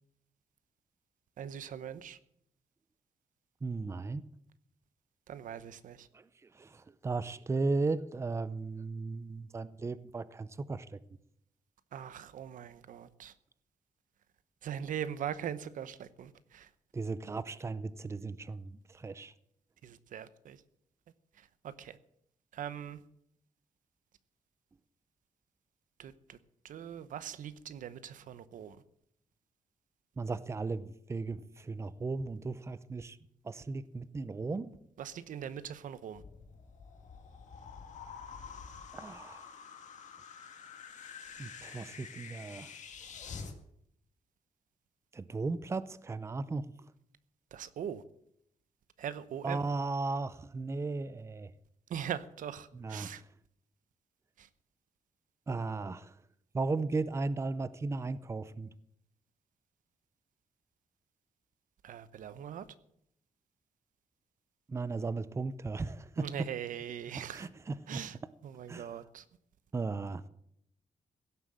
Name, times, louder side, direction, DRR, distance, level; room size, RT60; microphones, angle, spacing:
voice 1, 1.4-2.2 5.3-6.1 11.9-13.3 14.6-16.7 19.8-20.6 21.6-22.0 22.5-23.0 26.0-26.4 26.6-28.8 35.0-36.2 47.5-48.0 49.0-49.6 51.9-53.2 54.4-54.5 61.8-62.6 66.2-67.5 67.9-68.2 68.4-69.2, right 9 dB, 90° right, 0.8 m, -41 dB
voice 2, 3.6-4.2 6.1-6.2 6.5-11.0 16.9-19.3 30.2-33.2 33.4-34.7 38.9-39.4 41.4-42.7 45.1-46.7 49.4-51.5 52.7-53.2 55.5-56.2 56.5-58.7 64.7-66.3 67.3-68.0 68.7-68.9 69.7-70.2, right 3 dB, 20° right, 0.6 m, -36 dB
sound 1, 36.1-43.5, left 6 dB, 65° left, 1.9 m, -48 dB
16.5 x 7.6 x 7.6 m
wide cardioid pair, 150°, 13 cm